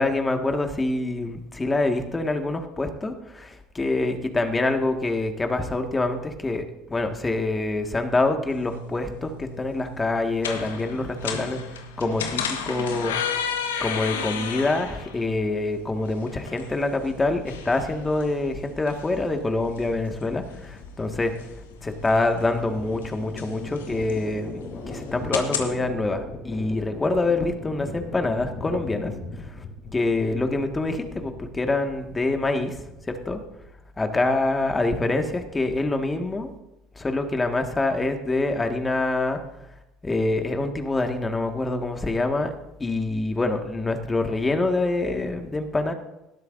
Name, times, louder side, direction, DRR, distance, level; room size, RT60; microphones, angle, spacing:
voice 1, 0.0-13.5 13.8-21.3 21.8-29.6 29.9-33.4 34.0-36.5 37.0-39.4 40.0-42.5 42.8-45.9, left 2 dB, 20° left, 5 dB, 1.7 m, -26 dB
sound 1, 8.5-25.7, left 7 dB, 80° left, 1.4 m, -35 dB
sound 2, 17.0-34.0, left 3 dB, 50° left, 4.7 m, -40 dB
18.5 x 12.5 x 2.6 m, 0.92 s
hypercardioid pair, 65°, 0 cm